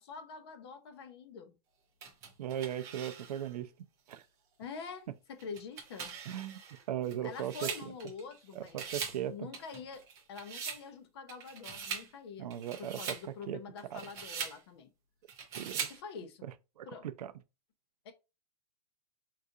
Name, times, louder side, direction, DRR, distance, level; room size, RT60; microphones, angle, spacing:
voice 1, 0.0-1.6 4.6-6.2 7.2-8.8 9.1-14.9 15.9-16.5 16.8-17.1 18.0-18.1, left 5 dB, 40° left, 0.6 m, -46 dB
sound 1, 2.0-3.5 4.1-4.2 5.4-8.4 8.7-9.2 9.5-10.8 11.3-12.1 12.5-13.2 13.8-14.6 15.3-16.0, right 6 dB, 15° right, 0.5 m, -41 dB
voice 2, 2.4-3.7 4.1-4.2 6.3-6.6 6.9-7.7 8.6-9.5 12.4-13.2 13.5-13.6 13.9-14.0 15.6-15.9 16.8-16.9 17.2-17.3, right 10 dB, 70° right, 0.5 m, -37 dB
3.7 x 2.4 x 2.6 m
hypercardioid pair, 170°, 21 cm